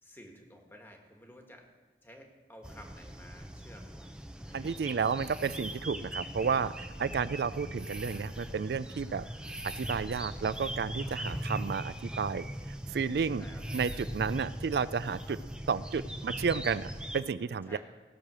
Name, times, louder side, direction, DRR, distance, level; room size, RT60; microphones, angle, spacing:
voice 1, 0.0-1.6 2.0-4.2 4.5-5.2 9.1-9.2 13.4-13.6 15.3-15.4 17.6-17.8, equal, 10° left, 2 dB, 1.3 m, -53 dB
sound 1, 2.6-17.2, right 1 dB, 5° right, 0.5 m, -40 dB
voice 2, 4.5-9.2 9.7-12.5 12.9-13.5 13.7-15.4 15.7-17.8, right 6 dB, 60° right, 16 dB, 0.3 m, -32 dB
17.0 x 6.6 x 6.2 m, 1.4 s
head